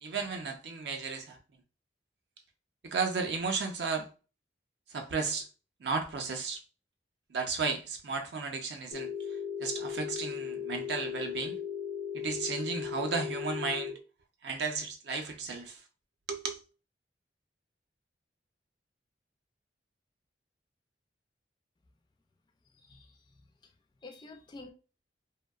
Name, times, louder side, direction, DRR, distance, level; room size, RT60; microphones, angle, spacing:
voice 1, 0.0-1.4 2.8-4.1 4.9-5.5 5.8-6.6 7.3-9.1 9.6-11.6 12.1-13.9 14.4-15.8 16.3-16.6, right 4 dB, 65° right, 0.5 m, -34 dB
Telephone, 8.9-13.9, left 8 dB, 75° left, 0.7 m, -37 dB
voice 2, 22.7-23.7 24.0-24.7, left 2 dB, 25° left, 0.3 m, -50 dB
2.6 x 2.0 x 2.3 m
head